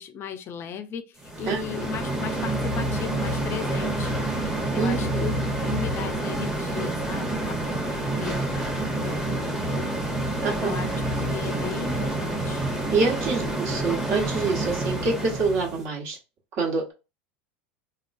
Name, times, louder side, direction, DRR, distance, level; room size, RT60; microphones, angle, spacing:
voice 1, 0.0-5.3 5.6-9.9 10.6-10.9 11.3-12.6 13.2-13.6, left 7 dB, 40° left, 0.4 m, -37 dB
sound 1, 1.2-15.8, right 1 dB, 5° right, 0.9 m, -28 dB
voice 2, 4.7-5.3 10.4-10.7 12.9-16.2 16.6-16.9, right 4 dB, 50° right, 1.3 m, -26 dB
3.4 x 2.2 x 2.5 m
hypercardioid pair, 105°, 6 cm